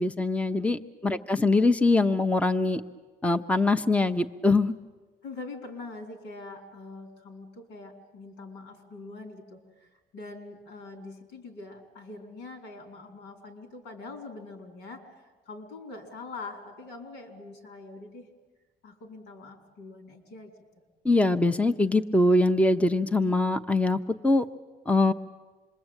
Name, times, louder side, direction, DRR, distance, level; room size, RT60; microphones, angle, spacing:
voice 1, 0.0-2.8 3.2-4.7 21.0-24.5 24.9-25.1, left 2 dB, 5° left, 8 dB, 0.9 m, -23 dB
voice 2, 5.2-15.0 15.5-18.3 18.8-20.5, left 3 dB, 85° left, 6 dB, 4.7 m, -43 dB
27.0 x 21.5 x 9.0 m, 1.3 s
cardioid pair, 110°, 17 cm